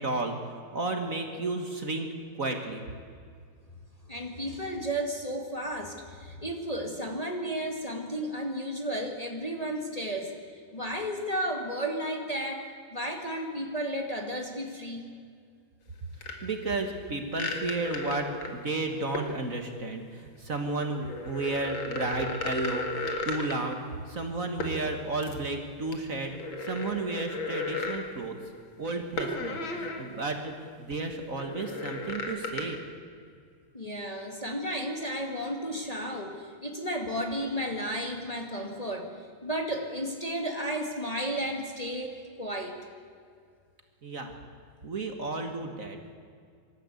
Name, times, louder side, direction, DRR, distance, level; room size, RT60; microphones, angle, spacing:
voice 1, 0.0-2.1 2.3-2.8 16.4-23.8 24.1-26.3 26.6-28.3 28.8-32.8 44.0-44.3 44.8-46.0, right 2 dB, 45° right, 5 dB, 1.8 m, -33 dB
voice 2, 4.1-10.3 10.7-15.0 33.7-39.1 39.4-42.8, equal, 20° left, 2 dB, 1.8 m, -33 dB
sound 1, 16.2-16.3 17.3-18.6 19.1-19.3 20.8-23.7 24.6-24.8 25.2-25.3 25.9-28.0 29.2-30.0 30.4-30.5 31.3-32.6, left 2 dB, 80° left, 2.7 m, -34 dB
24.5 x 13.0 x 8.3 m, 2.2 s
omnidirectional pair, 2.1 m